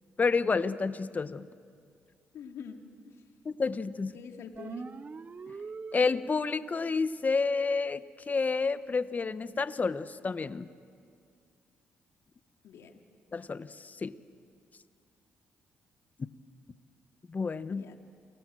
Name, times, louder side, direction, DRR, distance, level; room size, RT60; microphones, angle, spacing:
voice 1, 0.2-1.5 3.4-4.1 5.5-5.6 5.9-10.7 13.3-14.2 17.3-17.8, left 4 dB, 35° left, 13 dB, 1.0 m, -30 dB
voice 2, 2.3-3.2 4.1-4.9 12.6-13.0 17.7-17.9, left 6 dB, 80° left, 4 dB, 2.5 m, -46 dB
sound 1, 4.5-6.5, right 5 dB, 35° right, 0.6 m, -42 dB
30.0 x 23.0 x 7.8 m, 2.2 s
cardioid pair, 75°, 5 cm